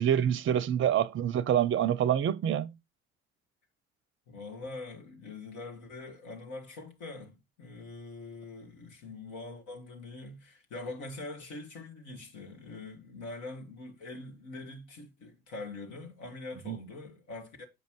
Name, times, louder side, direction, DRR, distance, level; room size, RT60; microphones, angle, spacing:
voice 1, 0.0-2.7 16.7-16.8, right 10 dB, 40° right, 0.6 m, -26 dB
voice 2, 4.3-17.7, left 3 dB, 65° left, 1.9 m, -43 dB
8.2 x 5.2 x 3.1 m
hypercardioid pair, 50°, 31 cm